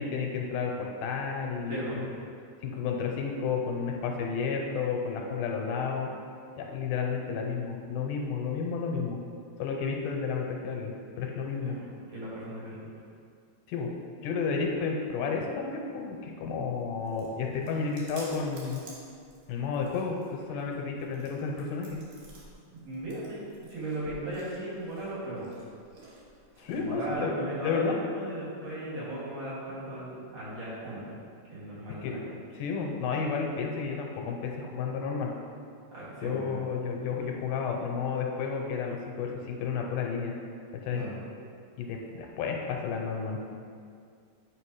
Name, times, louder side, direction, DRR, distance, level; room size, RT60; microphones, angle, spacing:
voice 1, 0.0-2.1 2.6-6.1 6.6-9.2 9.6-11.8 13.7-13.9 14.2-18.8 19.5-22.0 26.6-27.3 27.6-28.0 32.0-32.1 32.6-35.3 36.2-40.3 40.8-41.0 41.8-43.4, left 5 dB, 85° left, 1 dB, 2.2 m, -31 dB
voice 2, 1.7-2.0 11.6-12.9 22.7-25.5 26.7-27.8 28.1-31.1 31.5-32.2 35.9-36.6 40.9-41.2, right 1 dB, 55° right, -10 dB, 2.9 m, -37 dB
Chewing mastication, 16.5-27.1, right 2 dB, 90° right, 2.8 m, -53 dB
9.4 x 3.2 x 4.7 m, 2.2 s
omnidirectional pair, 3.7 m